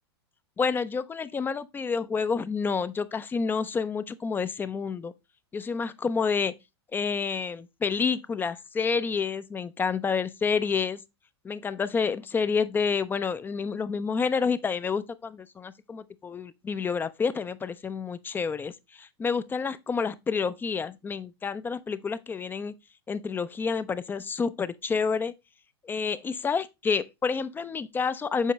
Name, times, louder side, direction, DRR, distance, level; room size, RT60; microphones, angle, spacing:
voice 1, 0.6-5.1 5.5-6.5 6.9-11.0 11.4-22.7 23.1-25.3 25.8-28.5, left 5 dB, 15° left, 0.4 m, -29 dB
7.3 x 4.5 x 3.0 m
hypercardioid pair, 105°, 14 cm